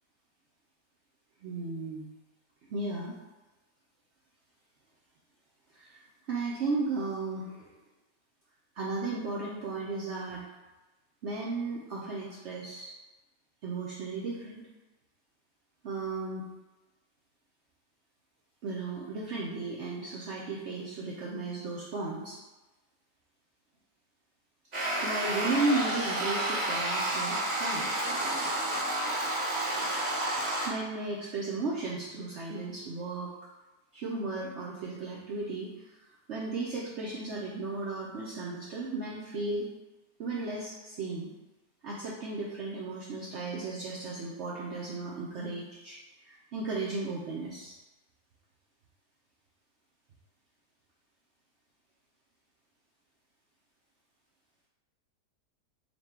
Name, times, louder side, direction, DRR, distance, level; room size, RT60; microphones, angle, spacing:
voice 1, 1.4-2.1 2.7-3.2 5.7-6.0 6.3-7.7 8.7-10.4 11.2-12.9 13.6-14.6 15.8-16.4 18.6-22.4 25.0-27.9 30.6-33.3 33.9-36.0 36.3-39.7 40.2-41.3 41.8-46.0 46.2-47.8, right 3 dB, 70° right, -5 dB, 0.6 m, -35 dB
sound 1, 24.7-30.7, right 1 dB, 35° right, 1.5 m, -30 dB
4.3 x 2.2 x 4.2 m, 1.1 s
omnidirectional pair, 1.8 m